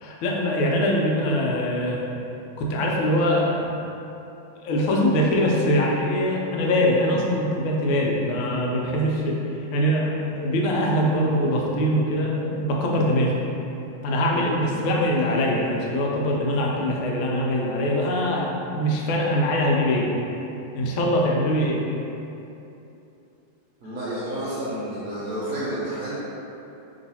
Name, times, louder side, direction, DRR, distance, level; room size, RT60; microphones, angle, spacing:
voice 1, 0.0-2.1 2.6-3.7 4.6-9.4 9.7-13.3 14.0-20.1 20.7-21.8, equal, 90° left, -2 dB, 1.5 m, -23 dB
voice 2, 23.8-26.2, right 1 dB, 65° right, -9 dB, 0.9 m, -30 dB
3.1 x 3.1 x 4.0 m, 2.9 s
omnidirectional pair, 2.2 m